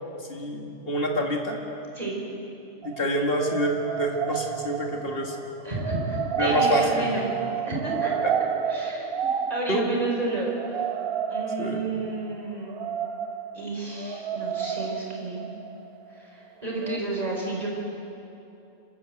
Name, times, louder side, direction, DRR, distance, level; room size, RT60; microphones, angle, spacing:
voice 1, 0.3-1.6 2.8-5.4 6.4-7.2 8.2-8.3 9.7-9.8 11.6-12.0, equal, 45° left, 1 dB, 2.3 m, -27 dB
sound 1, 2.8-16.4 16.8-17.0, right 7 dB, 55° right, 0.9 m, -31 dB
voice 2, 5.6-7.3 7.6-8.1 8.7-10.8 11.3-12.8 13.5-15.5 16.1-17.7, right 2 dB, 30° right, -3 dB, 4.9 m, -31 dB
26.0 x 13.5 x 7.9 m, 2.8 s
omnidirectional pair, 1.3 m